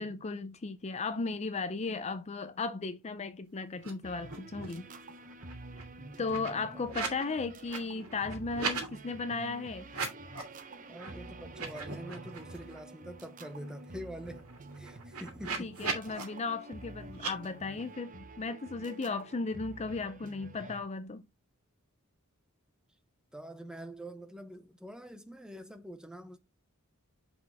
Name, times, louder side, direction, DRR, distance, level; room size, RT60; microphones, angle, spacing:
voice 1, 0.0-4.9 5.8-5.9 6.2-9.9 15.6-21.2, left 4 dB, 30° left, 0.5 m, -36 dB
sound 1, 3.8-4.8 5.2-7.2 7.5-8.9 9.8-10.6 11.0-11.1 11.5-12.8 13.2-13.3 13.5-16.2 17.1-17.3, right 4 dB, 85° right, 2.3 m, -39 dB
sound 2, 4.0-20.8, right 2 dB, 40° right, 0.7 m, -49 dB
voice 2, 6.0-6.9 10.9-14.5 14.8-16.3 23.3-26.4, equal, 5° right, 0.8 m, -45 dB
6.2 x 4.9 x 3.4 m
head